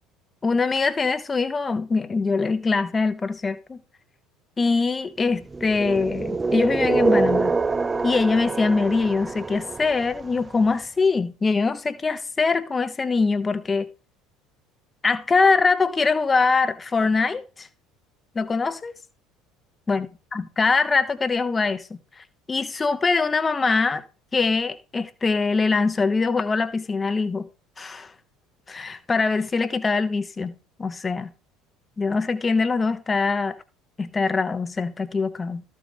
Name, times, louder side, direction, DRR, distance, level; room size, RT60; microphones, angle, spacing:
voice 1, 0.4-3.8 4.6-7.6 8.0-13.9 15.0-17.7 18.3-18.9 19.9-20.1 20.3-24.0 24.3-27.5 27.8-28.1 28.7-31.3 32.0-33.6 34.0-35.6, left 4 dB, 20° left, 0.9 m, -23 dB
sound 1, 5.5-10.5, right 3 dB, 20° right, 0.4 m, -25 dB
13.5 x 4.7 x 4.3 m
figure-of-eight pair, 60°, 0 cm